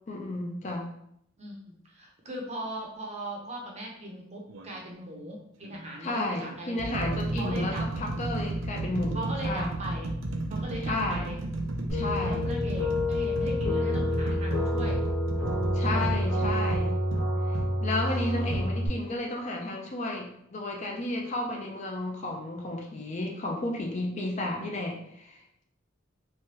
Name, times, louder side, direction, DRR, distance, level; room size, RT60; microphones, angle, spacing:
voice 1, 0.1-0.9 6.0-9.7 10.9-11.3 11.9-12.5 15.7-17.0 17.8-25.4, left 2 dB, 35° left, 0 dB, 0.4 m, -32 dB
voice 2, 1.4-7.9 9.1-10.1 10.5-11.4 12.2-15.0 15.9-16.7 18.3-18.4, right 1 dB, 35° right, -1 dB, 0.6 m, -39 dB
sound 1, 4.5-4.7 5.6-5.8 6.4-17.7 18.5-18.7, right 2 dB, 90° right, 0.5 m, -33 dB
sound 2, 11.9-18.9, left 1 dB, 75° left, 1.0 m, -28 dB
3.2 x 2.2 x 2.8 m, 0.72 s
head